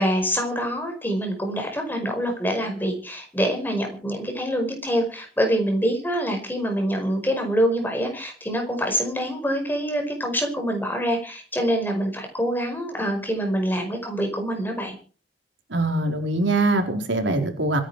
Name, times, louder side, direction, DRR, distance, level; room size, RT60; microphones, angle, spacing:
voice 1, 0.0-14.9, equal, 10° left, 4 dB, 5.2 m, -25 dB
voice 2, 15.7-17.8, right 2 dB, 80° right, 4 dB, 4.1 m, -23 dB
26.0 x 10.5 x 4.9 m, 0.40 s
head